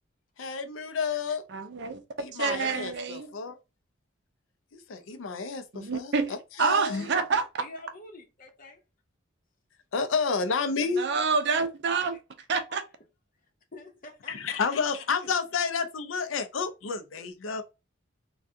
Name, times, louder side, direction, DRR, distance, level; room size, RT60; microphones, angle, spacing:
voice 1, 0.4-1.4 2.2-3.6 4.9-7.1 9.9-11.0 14.3-17.6, left 5 dB, 75° left, 0.5 m, -30 dB
voice 2, 1.5-2.0 2.3-3.3 5.7-7.5 10.9-12.2 12.5-12.8, right 5 dB, 60° right, 0.5 m, -27 dB
voice 3, 7.6-8.8 13.7-14.8, left 2 dB, 45° left, 0.9 m, -46 dB
3.4 x 2.3 x 2.6 m
head